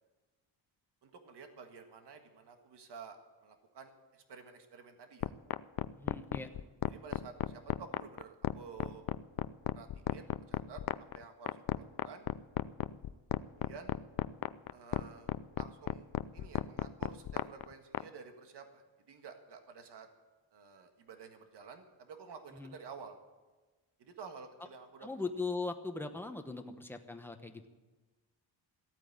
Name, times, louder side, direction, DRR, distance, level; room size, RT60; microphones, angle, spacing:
voice 1, 1.0-5.3 6.5-9.0 9.7-10.8 11.1-12.3 13.4-13.9 14.7-15.3 15.6-20.1 20.5-23.2 24.0-25.1, right 5 dB, 55° right, 5 dB, 1.8 m, -51 dB
sound 1, 5.2-18.0, left 12 dB, 50° left, 0.4 m, -34 dB
voice 2, 5.9-6.5 22.5-22.8 25.0-27.7, left 3 dB, 5° left, 6 dB, 0.9 m, -39 dB
15.0 x 8.9 x 8.7 m, 1.2 s
wide cardioid pair, 150°, 48 cm